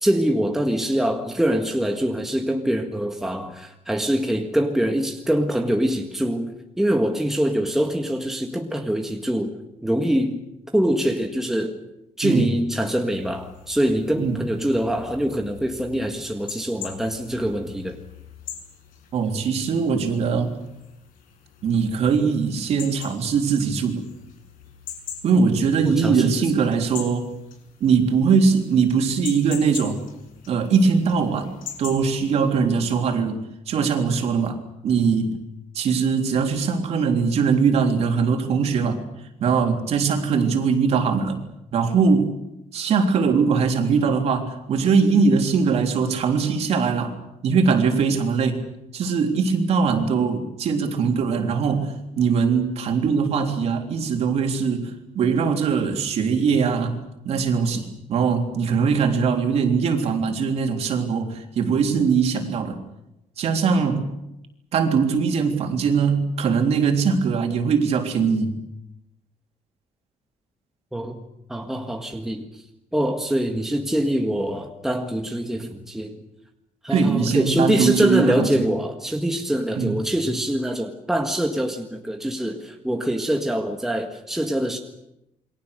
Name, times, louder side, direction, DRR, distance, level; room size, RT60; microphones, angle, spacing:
voice 1, 0.0-9.5 9.8-10.4 10.7-11.8 12.2-18.0 25.8-26.5 70.9-71.2 71.5-72.6 72.9-76.2 76.8-84.8, equal, 5° right, 2 dB, 1.7 m, -24 dB
sound 1, 13.1-32.6, left 8 dB, 85° left, 6.2 m, -42 dB
voice 2, 19.1-20.6 21.6-24.0 25.2-27.3 27.8-30.0 30.5-31.5 31.8-34.6 34.8-35.3 35.8-39.0 39.4-41.4 41.7-42.3 42.7-47.2 47.4-48.7 48.9-62.8 63.4-64.1 64.7-68.6 76.9-78.6 79.8-80.0, right 5 dB, 50° right, 4 dB, 3.6 m, -21 dB
28.5 x 23.0 x 6.7 m, 0.87 s
cardioid pair, 180°, 14 cm